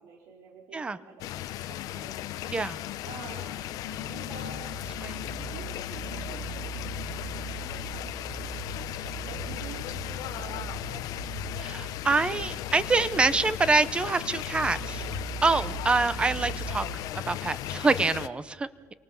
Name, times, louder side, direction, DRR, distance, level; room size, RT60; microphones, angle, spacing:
voice 1, 0.0-2.3 3.0-4.7 5.3-6.7 7.6-8.6 9.3-11.1, right 5 dB, 70° right, 0 dB, 4.2 m, -48 dB
sound 1, 1.2-18.3, left 13 dB, 60° left, 0.9 m, -36 dB
sound 2, 2.3-17.2, right 4 dB, 40° right, 2.9 m, -41 dB
voice 2, 11.6-15.1 15.4-18.9, right 3 dB, 15° right, 15 dB, 0.8 m, -26 dB
29.5 x 24.5 x 7.2 m, 1.5 s
cardioid pair, 170°, 7 cm